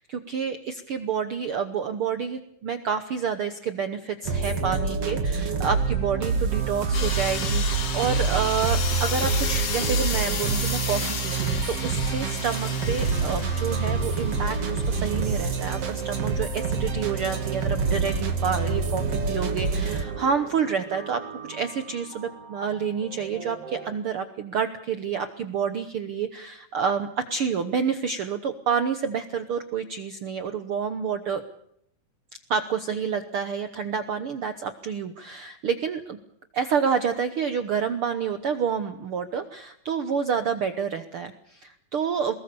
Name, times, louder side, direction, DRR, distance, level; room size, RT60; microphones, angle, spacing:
voice 1, 0.0-21.2 21.5-31.4 32.5-36.2 36.5-42.3, right 6 dB, 80° right, 9 dB, 1.2 m, -28 dB
sound 1, 4.2-23.9, right 5 dB, 45° right, 3.0 m, -27 dB
sound 2, 6.9-15.5, left 6 dB, 45° left, 2.7 m, -33 dB
23.5 x 21.0 x 6.9 m, 0.74 s
omnidirectional pair, 4.1 m